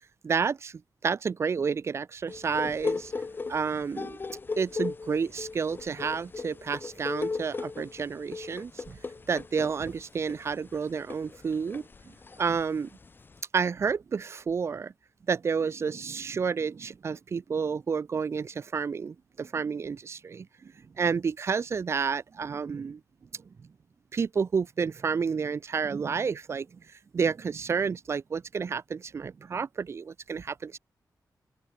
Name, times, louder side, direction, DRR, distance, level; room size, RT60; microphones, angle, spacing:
voice 1, 0.2-0.7 1.0-3.1 3.5-4.2 4.6-9.0 9.3-11.8 12.4-12.9 13.5-14.9 15.3-20.7 21.0-23.0 24.1-26.7 27.1-30.8, right 5 dB, 40° right, 0.4 m, -30 dB
sound 1, 2.3-13.4, left 4 dB, 30° left, 0.8 m, -37 dB
open air
wide cardioid pair, 155°, 7 cm